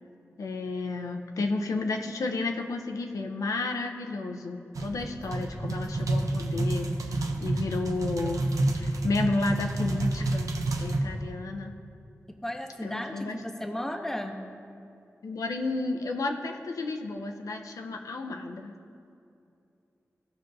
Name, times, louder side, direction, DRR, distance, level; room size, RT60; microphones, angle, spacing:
voice 1, 0.4-10.5 10.8-11.8 12.8-13.4 15.2-18.8, left 3 dB, 85° left, 3 dB, 0.6 m, -32 dB
sound 1, 4.7-11.0, right 2 dB, 85° right, 0.6 m, -29 dB
voice 2, 12.4-14.4, left 1 dB, 5° left, 4 dB, 0.6 m, -34 dB
15.0 x 5.2 x 2.7 m, 2.6 s
wide cardioid pair, 115°, 6 cm